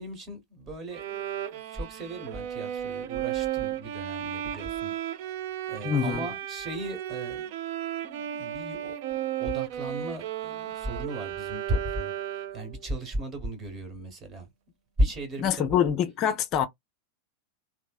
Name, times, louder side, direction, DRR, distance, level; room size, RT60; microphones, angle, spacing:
voice 1, 0.0-5.4 5.7-7.5 8.0-12.1 12.5-14.5 15.0-15.8, equal, 30° right, 1.3 m, -35 dB
Bowed string instrument, 0.9-12.8, right 11 dB, 55° right, 0.4 m, -34 dB
voice 2, 5.8-6.3 15.4-16.7, left 9 dB, 40° left, 0.5 m, -25 dB
3.1 x 2.0 x 2.4 m
figure-of-eight pair, 90°, 0 cm